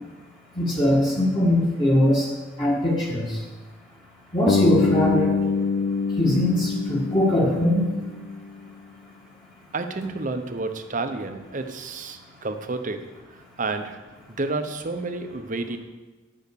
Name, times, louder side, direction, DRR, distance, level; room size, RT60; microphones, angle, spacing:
voice 1, 0.6-2.3 2.6-3.4 4.3-5.3 6.2-7.9, left 1 dB, 25° left, -6 dB, 1.8 m, -21 dB
Bass guitar, 4.5-8.6, left 5 dB, 60° left, 0.4 m, -25 dB
voice 2, 9.7-14.0 14.3-15.8, right 3 dB, 45° right, 7 dB, 0.8 m, -30 dB
10.5 x 5.8 x 6.8 m, 1.2 s
head